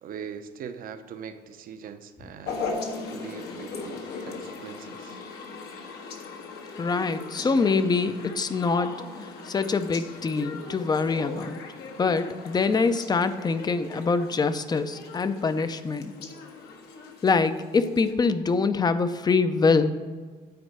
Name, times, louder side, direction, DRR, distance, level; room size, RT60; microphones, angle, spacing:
voice 1, 0.0-2.7 3.1-5.2, right 7 dB, 55° right, 9 dB, 0.8 m, -41 dB
sound 1, 2.4-18.1, left 4 dB, 75° left, 1.3 m, -39 dB
voice 2, 6.8-9.0 9.5-11.6 12.0-16.1 17.2-19.9, left 4 dB, 25° left, 11 dB, 0.5 m, -24 dB
9.3 x 4.4 x 6.6 m, 1.5 s
cardioid pair, 110°, 17 cm